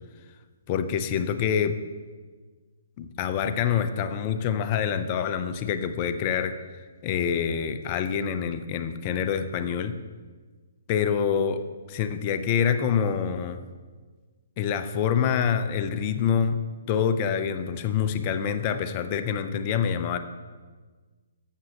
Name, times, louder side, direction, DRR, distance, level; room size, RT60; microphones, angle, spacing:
voice 1, 0.7-1.8 3.0-6.6 7.0-9.9 10.9-13.6 14.6-16.6 16.9-20.2, left 7 dB, 35° left, 10 dB, 0.6 m, -26 dB
12.5 x 7.5 x 3.0 m, 1.4 s
hypercardioid pair, 135°, 0 cm